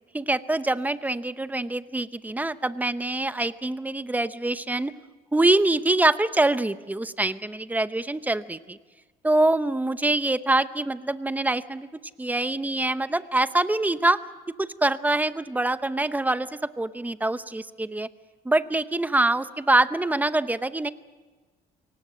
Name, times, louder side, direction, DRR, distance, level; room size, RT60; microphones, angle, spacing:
voice 1, 0.1-4.9 5.3-8.8 9.2-11.9 12.2-14.2 14.6-18.1 18.4-20.9, right 2 dB, 10° right, 13 dB, 0.8 m, -24 dB
23.5 x 18.5 x 7.4 m, 1.3 s
cardioid pair, 110°, 17 cm